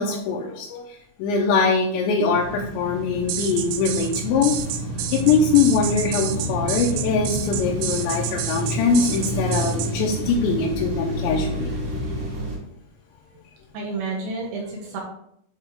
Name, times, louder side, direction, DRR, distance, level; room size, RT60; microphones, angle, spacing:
voice 1, 0.0-4.6 5.1-11.7, left 5 dB, 80° left, -3 dB, 2.8 m, -22 dB
sound 1, 2.3-12.6, equal, 45° right, 2.2 m, -29 dB
sound 2, 3.3-9.9, right 11 dB, 90° right, 2.5 m, -30 dB
voice 2, 13.7-15.0, right 3 dB, 70° right, -1 dB, 3.2 m, -31 dB
10.5 x 4.1 x 3.6 m, 0.71 s
omnidirectional pair, 5.8 m